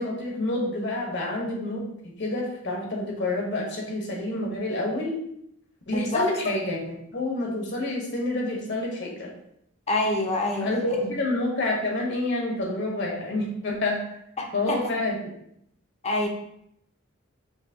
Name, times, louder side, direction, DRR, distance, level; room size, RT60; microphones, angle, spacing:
voice 1, 0.0-5.2 5.9-9.3 10.6-14.0 14.5-15.3, left 2 dB, 60° left, -1 dB, 1.1 m, -28 dB
voice 2, 5.9-6.3 9.9-10.7 11.0-11.1 14.4-14.8 16.0-16.3, left 2 dB, 30° left, 2 dB, 0.6 m, -26 dB
4.7 x 2.8 x 2.8 m, 0.74 s
head